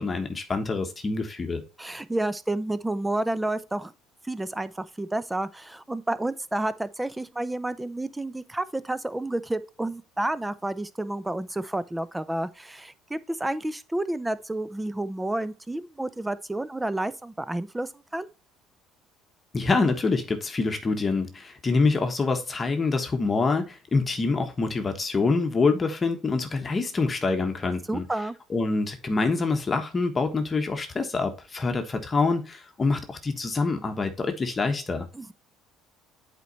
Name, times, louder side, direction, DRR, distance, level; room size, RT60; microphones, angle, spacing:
voice 1, 0.0-1.6 19.5-28.0 28.5-35.1, left 3 dB, 25° left, 1.3 m, -26 dB
voice 2, 1.8-3.9 4.2-18.3 27.9-28.3 35.1-35.3, right 1 dB, 10° right, 0.6 m, -30 dB
8.2 x 4.6 x 4.0 m
supercardioid pair, 100°, 0 cm